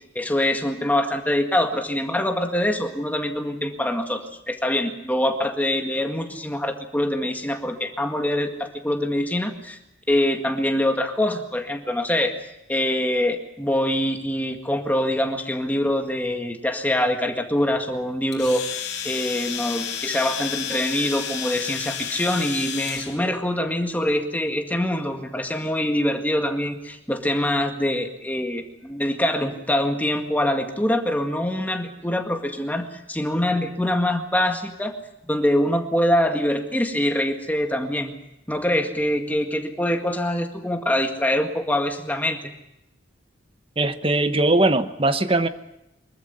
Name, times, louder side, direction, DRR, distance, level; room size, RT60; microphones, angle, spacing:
voice 1, 0.2-9.8 10.1-12.3 12.7-18.8 19.0-34.9 35.3-38.2 38.5-42.4, left 1 dB, 10° left, 4 dB, 1.9 m, -24 dB
Domestic sounds home sounds, 18.3-23.2, left 8 dB, 60° left, 3.3 m, -31 dB
voice 2, 43.8-45.5, right 2 dB, 30° right, 11 dB, 1.0 m, -20 dB
24.0 x 14.0 x 9.6 m, 0.87 s
head